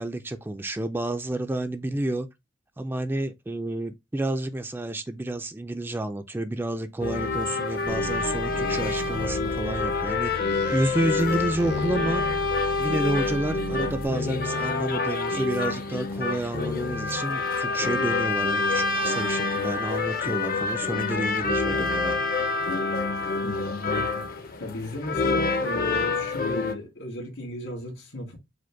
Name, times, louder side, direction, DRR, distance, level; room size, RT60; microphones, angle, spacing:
voice 1, 0.0-2.3 2.8-10.3 10.7-12.3 12.8-22.2, right 1 dB, 10° right, 0.3 m, -30 dB
sound 1, 7.0-26.7, left 3 dB, 50° left, 0.6 m, -27 dB
sound 2, 7.9-14.1, right 3 dB, 60° right, 0.6 m, -37 dB
voice 2, 23.4-28.4, left 1 dB, 75° left, 1.9 m, -35 dB
4.9 x 2.1 x 4.5 m
head